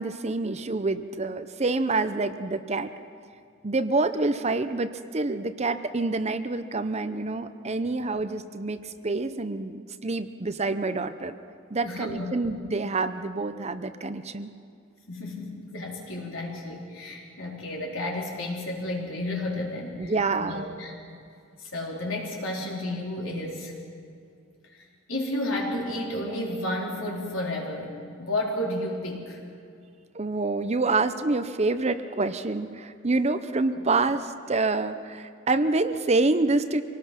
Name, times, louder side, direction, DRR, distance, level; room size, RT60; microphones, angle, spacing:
voice 1, 0.0-2.9 3.6-11.3 11.7-14.5 20.0-20.7 30.1-36.8, right 3 dB, 35° right, 10 dB, 0.7 m, -27 dB
voice 2, 11.8-12.3 15.1-20.1 20.4-21.1 21.6-23.7 25.1-29.4 33.7-33.9, left 1 dB, 80° left, -2 dB, 4.1 m, -32 dB
25.0 x 18.5 x 5.9 m, 2.4 s
head